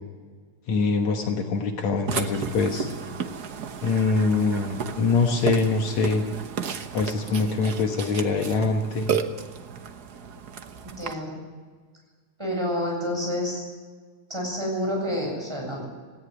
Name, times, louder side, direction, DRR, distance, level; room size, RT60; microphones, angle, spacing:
voice 1, 0.7-2.9 3.8-6.2 6.9-9.2, left 4 dB, 70° left, 4 dB, 2.6 m, -24 dB
Burping eructation, 2.1-11.1, right 7 dB, 65° right, 0.9 m, -33 dB
voice 2, 10.8-11.4 12.4-13.7 14.3-15.9, equal, 10° right, -1 dB, 7.6 m, -29 dB
18.5 x 17.0 x 9.7 m, 1.5 s
omnidirectional pair, 3.4 m